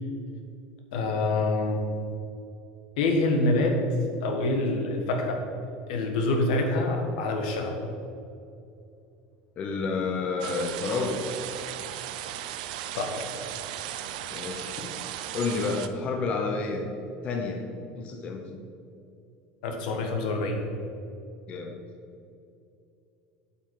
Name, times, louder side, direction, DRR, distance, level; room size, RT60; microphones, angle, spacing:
voice 1, 0.9-1.8 3.0-3.8 4.2-5.4 5.9-7.8 12.9-13.3 19.6-20.6, left 2 dB, 90° left, 3 dB, 1.4 m, -26 dB
voice 2, 9.6-11.2 14.3-14.9 15.3-16.9 17.2-17.6 18.0-18.4 21.5-21.7, left 4 dB, 30° left, 3 dB, 0.7 m, -30 dB
sound 1, 10.4-15.9, right 11 dB, 85° right, 0.5 m, -36 dB
8.1 x 5.9 x 4.7 m, 2.6 s
cardioid pair, 170°, 4 cm